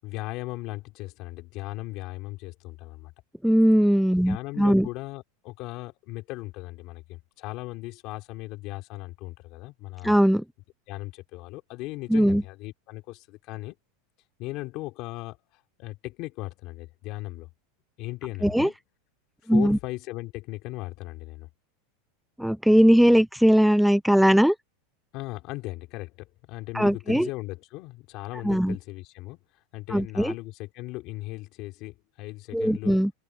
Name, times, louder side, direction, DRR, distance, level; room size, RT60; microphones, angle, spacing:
voice 1, 0.0-3.1 4.2-10.1 10.9-13.7 14.4-17.5 18.0-18.8 19.4-21.5 25.1-29.4 29.7-33.0, left 19 dB, 40° left, 3.5 m, -37 dB
voice 2, 3.4-4.9 10.0-10.4 12.1-12.4 18.4-18.7 19.5-19.8 22.4-24.6 26.7-27.3 28.4-28.8 29.9-30.3 32.5-33.1, equal, ahead, 0.5 m, -20 dB
open air
supercardioid pair, 165°, 0 cm